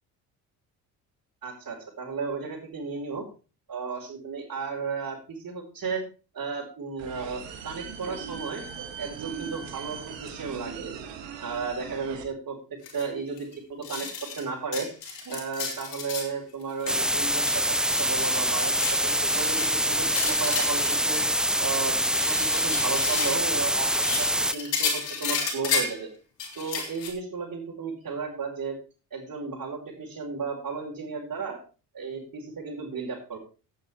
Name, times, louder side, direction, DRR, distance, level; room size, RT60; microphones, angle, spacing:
voice 1, 1.4-3.2 3.7-6.0 6.3-8.6 9.0-10.9 11.4-12.6 12.9-14.1 14.4-14.9 15.2-21.2 21.6-24.3 24.5-26.1 26.5-28.7 29.1-31.6 31.9-33.4, right 5 dB, 40° right, -4 dB, 5.0 m, -34 dB
sound 1, 7.0-12.2, right 7 dB, 65° right, 2.7 m, -39 dB
sound 2, 12.8-13.0 13.4-13.5 13.8-14.4 14.7-16.3 16.6-16.9 17.2-21.8 22.0-23.4 23.8-26.0 26.4-27.1, left 5 dB, 85° left, 2.8 m, -32 dB
sound 3, 16.9-24.5, right 1 dB, ahead, 0.7 m, -25 dB
16.0 x 8.4 x 3.5 m, 0.34 s
hypercardioid pair, 55°, 47 cm